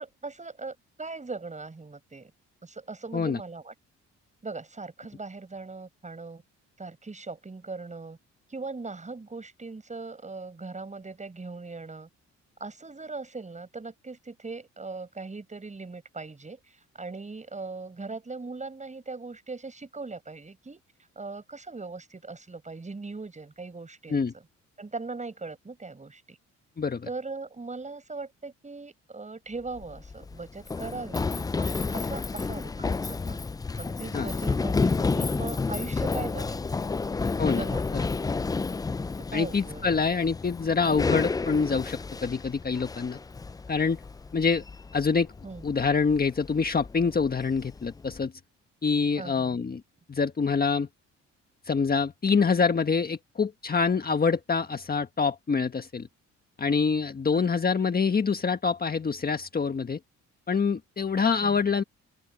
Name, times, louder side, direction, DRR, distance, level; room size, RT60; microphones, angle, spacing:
voice 1, 0.0-2.3 2.6-3.7 4.4-6.4 6.8-8.2 8.5-12.1 12.6-20.8 21.2-24.4 24.8-26.4 27.1-31.3 31.6-33.4 33.8-37.0 37.5-37.8 38.2-38.4 39.2-40.1 45.4-45.7 49.1-49.6 57.3-57.4 61.4-61.6, right 3 dB, 25° right, 7.3 m, -40 dB
Run, 29.7-48.2, left 4 dB, 15° left, 0.3 m, -31 dB
voice 2, 39.3-43.2 43.7-44.0 44.3-44.6 44.9-45.3 45.6-48.3 48.8-49.8 50.1-50.9 51.6-56.1 56.6-60.0 60.5-61.8, left 5 dB, 30° left, 1.5 m, -26 dB
open air
cardioid pair, 90°, 30 cm